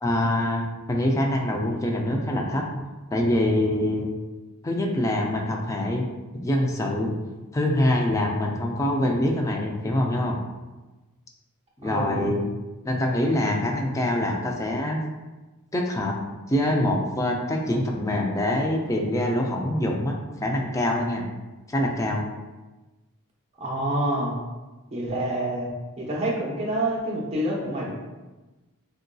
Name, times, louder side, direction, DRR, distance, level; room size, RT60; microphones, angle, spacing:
voice 1, 0.0-2.8 3.1-4.2 4.6-6.0 6.3-7.1 7.5-10.4 11.8-12.4 12.9-15.0 15.7-16.1 16.5-20.1 20.4-21.2 21.7-22.2, left 1 dB, 15° left, 0 dB, 0.3 m, -24 dB
voice 2, 11.8-12.4 23.6-24.4 24.9-25.7 26.0-27.9, right 1 dB, 30° right, -4 dB, 0.7 m, -27 dB
3.7 x 2.6 x 2.2 m, 1.2 s
head